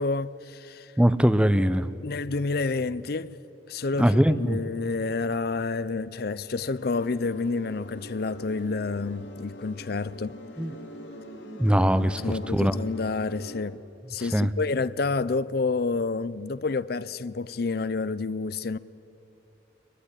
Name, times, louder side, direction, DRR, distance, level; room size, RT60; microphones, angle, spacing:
voice 1, 0.0-0.9 2.0-3.4 3.7-10.4 11.8-13.8 14.1-18.8, left 3 dB, 55° left, 0.5 m, -29 dB
voice 2, 1.0-1.9 4.0-4.6 10.6-10.7 11.4-12.7 14.2-14.5, equal, 5° right, 0.6 m, -22 dB
sound 1, 6.8-13.6, left 1 dB, 80° left, 3.6 m, -43 dB
23.5 x 21.5 x 9.9 m
head